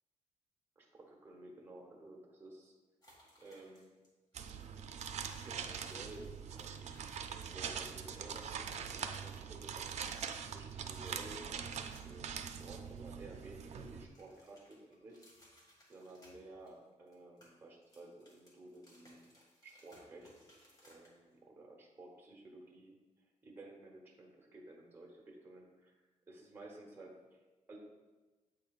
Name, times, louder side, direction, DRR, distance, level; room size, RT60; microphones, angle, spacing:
voice 1, 0.8-2.7 3.4-3.9 5.5-10.0 10.5-15.2 15.9-19.3 19.6-20.3 20.9-23.0 23.4-25.9 26.3-27.4 27.7-27.8, right 2 dB, 15° right, -2 dB, 1.0 m, -54 dB
sound 1, 3.0-4.1 4.3-4.5 4.9-7.7 8.0-9.0 9.8-10.6 10.9-12.2 12.6-13.6 13.9-16.8 17.1-21.4, equal, 30° left, 1.8 m, -65 dB
sound 2, 4.3-14.1, right 7 dB, 60° right, 0.4 m, -43 dB
8.4 x 5.6 x 2.4 m, 1.2 s
wide cardioid pair, 150°, 13 cm